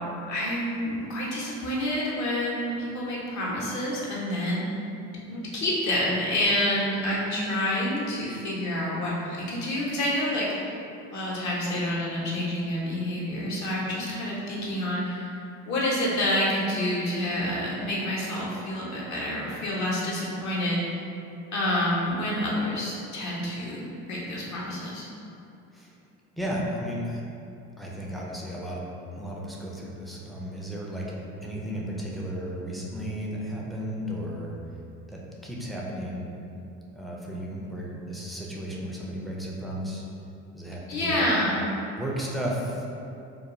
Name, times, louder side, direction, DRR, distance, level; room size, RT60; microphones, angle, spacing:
voice 1, 0.0-4.8 5.3-10.8 11.1-15.3 15.7-20.8 21.5-25.1 40.9-41.6, left 1 dB, 45° left, -5 dB, 0.8 m, -28 dB
voice 2, 26.4-27.2 27.8-28.8 29.2-34.5 35.1-36.2 36.9-40.0 40.5-41.3 42.0-42.9, equal, ahead, -4 dB, 0.3 m, -34 dB
2.3 x 2.3 x 3.0 m, 2.6 s
hypercardioid pair, 65°, 40 cm